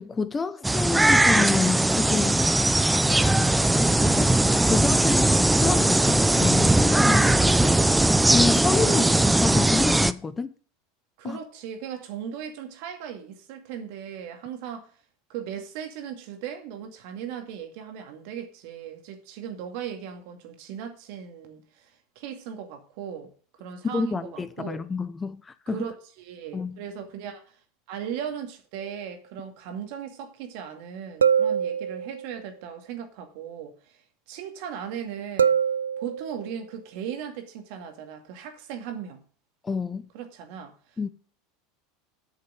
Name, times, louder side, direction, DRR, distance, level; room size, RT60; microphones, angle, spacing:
voice 1, 0.0-2.4 4.2-4.3 4.7-7.7 8.3-9.0 9.4-10.5 11.2-11.4 23.9-25.9 26.5-26.8 39.6-40.1 41.0-41.1, left 4 dB, 20° left, 0.8 m, -28 dB
sound 1, 0.6-10.1, right 1 dB, 5° right, 0.6 m, -20 dB
voice 2, 11.2-14.9 15.3-23.3 23.6-24.9 25.7-27.6 27.9-35.5 36.0-39.2 40.1-40.7, right 8 dB, 65° right, 2.2 m, -37 dB
sound 2, 28.8-28.9 31.2-32.4 35.4-36.5, right 7 dB, 90° right, 0.4 m, -24 dB
8.6 x 6.6 x 7.7 m
hypercardioid pair, 85°, 0 cm